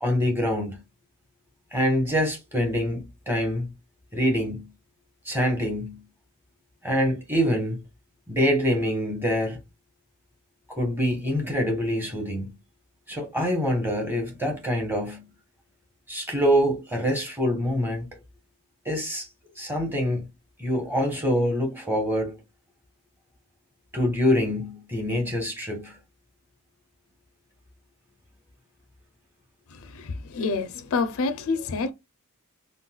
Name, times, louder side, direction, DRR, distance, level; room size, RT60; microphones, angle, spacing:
voice 1, 0.0-0.8 1.7-3.7 4.1-4.7 5.2-6.0 6.8-7.8 8.3-9.6 10.7-12.5 13.1-15.2 16.1-18.1 18.8-19.3 19.6-20.3 20.6-22.4 23.9-26.0, equal, 10° right, 1.1 m, -25 dB
voice 2, 30.0-31.9, left 4 dB, 70° left, 0.4 m, -27 dB
3.8 x 2.2 x 2.2 m
head